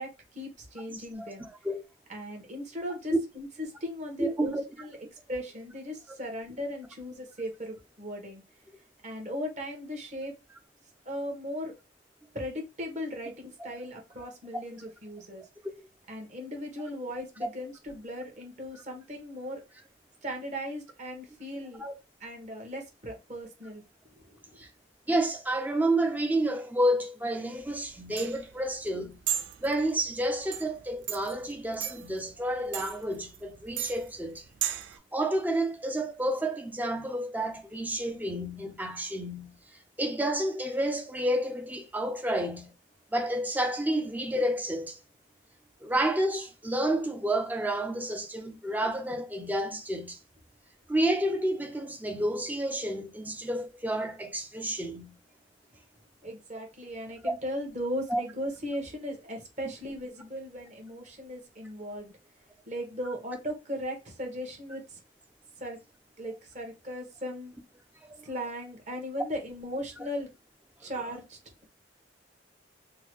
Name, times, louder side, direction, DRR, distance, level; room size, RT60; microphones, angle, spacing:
voice 1, 0.0-1.5 2.1-3.5 3.8-5.0 5.3-8.4 9.0-10.3 11.0-11.8 12.3-15.5 16.1-19.6 20.2-21.8 22.2-23.8 24.1-24.6 56.2-62.1 62.7-65.0 65.6-65.8 66.2-67.5 68.2-70.3 70.8-71.4, equal, 40° right, 1.2 m, -37 dB
voice 2, 0.9-1.8 4.2-4.6 21.8-21.9 24.6-24.7 25.1-29.2 29.6-34.4 35.1-39.6 40.0-42.7 43.1-45.0 45.8-50.2 50.9-55.2 58.1-58.2 68.1-68.2 70.8-70.9, right 1 dB, 10° right, 0.6 m, -30 dB
sound 1, 27.6-35.0, right 10 dB, 90° right, 0.4 m, -37 dB
3.7 x 2.2 x 3.1 m
head